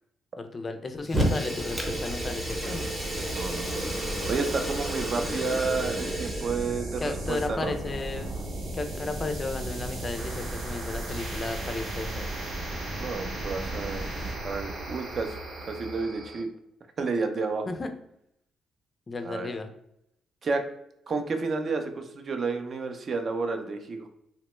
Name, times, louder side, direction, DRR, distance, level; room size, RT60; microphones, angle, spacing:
voice 1, 0.4-2.9 7.0-8.3 8.7-12.3 17.7-17.9 19.1-19.7, left 3 dB, 30° left, 7 dB, 0.4 m, -34 dB
Fire, 1.0-6.7, equal, 15° right, 0.8 m, -31 dB
sound 1, 1.1-16.4, right 1 dB, 65° right, 0.8 m, -36 dB
voice 2, 3.3-3.8 4.3-7.7 12.9-14.0 14.4-15.4 15.7-16.5 17.0-17.7 19.2-19.5 20.4-20.6 21.1-24.1, right 4 dB, 45° right, 6 dB, 0.4 m, -31 dB
2.9 x 2.1 x 3.0 m, 0.78 s
cardioid pair, 90°, 0 cm